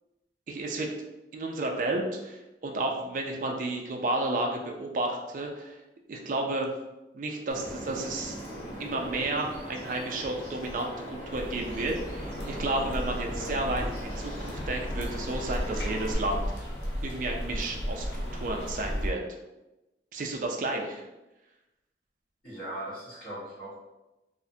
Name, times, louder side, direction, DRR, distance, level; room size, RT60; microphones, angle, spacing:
voice 1, 0.5-0.9 1.3-5.8 6.1-6.7 7.1-8.4 8.8-16.7 17.0-19.2 20.1-21.0, right 2 dB, 45° right, 2 dB, 0.3 m, -32 dB
Bird vocalization bird call bird song, 7.5-16.1, equal, 25° left, 0.9 m, -40 dB
sound 1, 11.3-19.1, equal, 80° left, 0.5 m, -34 dB
voice 2, 22.4-23.7, right 1 dB, 45° left, -16 dB, 1.1 m, -39 dB
2.4 x 2.1 x 2.6 m, 1.0 s
head